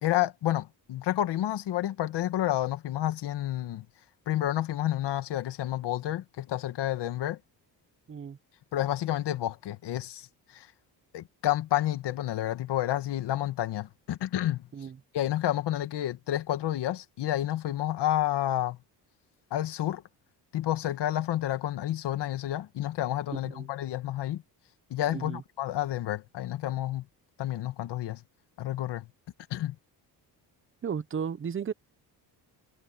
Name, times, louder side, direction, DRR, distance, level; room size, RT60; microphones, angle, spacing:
voice 1, 0.0-3.9 4.3-7.4 8.7-10.3 10.5-10.7 11.1-14.7 15.1-18.8 19.5-20.0 20.5-24.4 24.9-27.1 27.4-28.2 28.6-29.1 29.5-29.8, left 13 dB, 80° left, 2.0 m, -30 dB
voice 2, 8.1-8.4 14.7-15.0 23.4-23.7 25.1-25.4 30.8-31.7, right 7 dB, 30° right, 0.9 m, -34 dB
cardioid pair, 125°, 41 cm